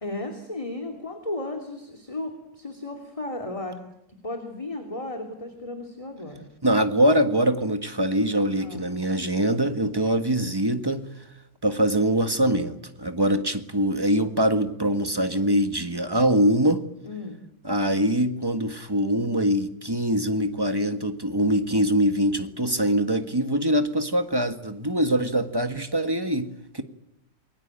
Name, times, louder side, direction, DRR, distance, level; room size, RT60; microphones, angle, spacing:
voice 1, 0.0-3.8 4.2-6.5 8.5-8.9 17.0-17.4, left 2 dB, 15° left, 4 dB, 2.9 m, -34 dB
voice 2, 6.6-11.1 11.6-16.8 17.6-26.5 26.7-26.8, right 1 dB, 15° right, 9 dB, 1.5 m, -23 dB
28.5 x 22.0 x 9.0 m, 0.81 s
omnidirectional pair, 2.0 m